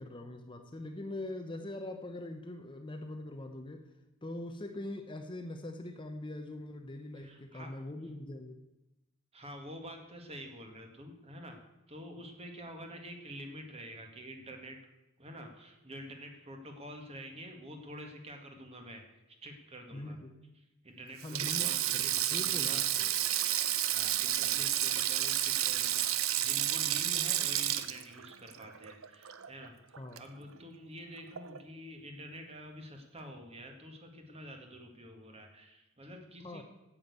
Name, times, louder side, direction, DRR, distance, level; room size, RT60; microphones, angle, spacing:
voice 1, 0.0-3.9 4.2-8.6 19.9-20.3 21.2-23.1 30.0-30.2 36.4-36.6, left 1 dB, 25° left, 6 dB, 0.8 m, -42 dB
voice 2, 7.2-7.7 9.3-11.6 11.9-14.8 15.2-19.1 19.4-20.2 20.8-22.8 23.9-36.6, equal, 30° right, 4 dB, 1.9 m, -47 dB
Sink (filling or washing), 21.2-29.7 29.9-30.2 31.4-31.6, right 12 dB, 85° right, 0.7 m, -31 dB
9.4 x 8.6 x 8.2 m, 0.96 s
head